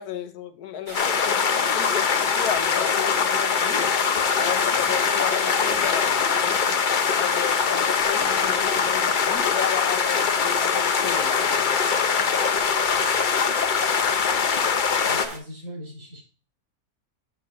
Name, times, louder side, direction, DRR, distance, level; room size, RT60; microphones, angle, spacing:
voice 1, 0.0-3.9 4.4-6.6 7.2-12.3, left 9 dB, 90° left, 1.4 m, -34 dB
sound 1, 0.9-15.3, left 6 dB, 50° left, 0.6 m, -22 dB
sound 2, 0.9-15.4, right 2 dB, 30° right, 1.6 m, -37 dB
voice 2, 12.9-13.3 15.1-16.2, equal, 55° right, 5.1 m, -40 dB
7.8 x 7.6 x 3.0 m
omnidirectional pair, 1.6 m